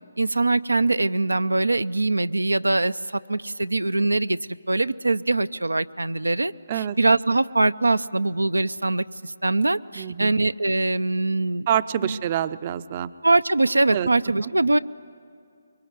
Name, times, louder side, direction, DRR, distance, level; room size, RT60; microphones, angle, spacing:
voice 1, 0.2-4.4 4.7-11.7 12.0-12.2 13.2-14.8, right 2 dB, 85° right, 13 dB, 0.5 m, -22 dB
voice 2, 10.0-10.3 11.7-13.1 13.9-14.1, right 10 dB, 35° right, 14 dB, 0.6 m, -26 dB
24.0 x 23.0 x 9.5 m, 2.4 s
figure-of-eight pair, 145°, 0 cm